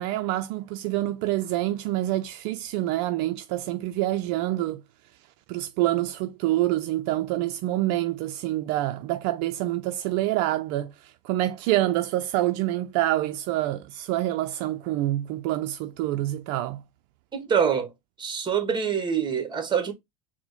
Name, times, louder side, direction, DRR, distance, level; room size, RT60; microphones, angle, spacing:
voice 1, 0.0-4.8 5.5-16.8, right 15 dB, 60° right, 0.4 m, -27 dB
voice 2, 17.3-17.9 18.2-19.9, right 7 dB, 20° right, 1.2 m, -25 dB
4.4 x 2.1 x 4.0 m
hypercardioid pair, 100°, 21 cm